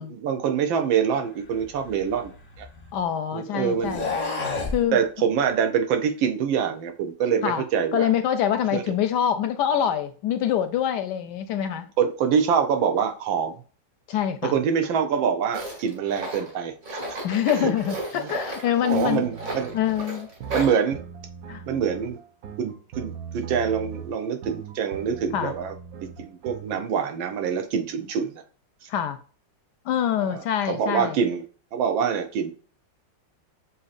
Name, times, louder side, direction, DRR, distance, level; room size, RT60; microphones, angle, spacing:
voice 1, 0.0-2.7 3.3-4.0 4.9-8.1 8.7-8.9 12.0-13.6 14.4-17.2 17.5-17.7 18.2-18.3 18.8-19.7 20.5-21.0 21.7-22.2 22.6-25.7 26.0-28.3 30.2-30.4 30.7-31.4 31.7-32.5, right 7 dB, 85° right, 1.5 m, -25 dB
sound 1, 1.6-3.0 3.8-4.8, left 3 dB, 40° left, 0.5 m, -31 dB
voice 2, 2.9-4.1 4.7-5.0 7.4-7.6 7.9-11.9 14.1-14.5 17.2-19.3 19.7-20.3 21.5-21.6 25.3-25.5 28.9-29.2 29.9-31.2, left 9 dB, 75° left, 1.0 m, -25 dB
Tools, 15.5-20.8, right 1 dB, 50° right, 1.7 m, -34 dB
sound 2, 18.9-26.8, right 7 dB, 65° right, 0.9 m, -40 dB
7.1 x 2.8 x 2.5 m
omnidirectional pair, 2.1 m